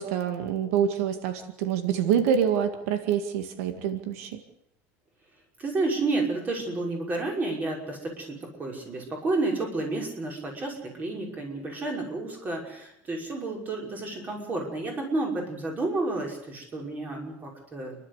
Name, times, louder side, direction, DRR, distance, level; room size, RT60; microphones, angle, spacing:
voice 1, 0.0-4.4, right 8 dB, 85° right, 8 dB, 2.1 m, -26 dB
voice 2, 5.6-18.0, right 2 dB, 20° right, 1 dB, 5.7 m, -31 dB
29.0 x 12.0 x 8.2 m, 0.79 s
cardioid pair, 155°, 8 cm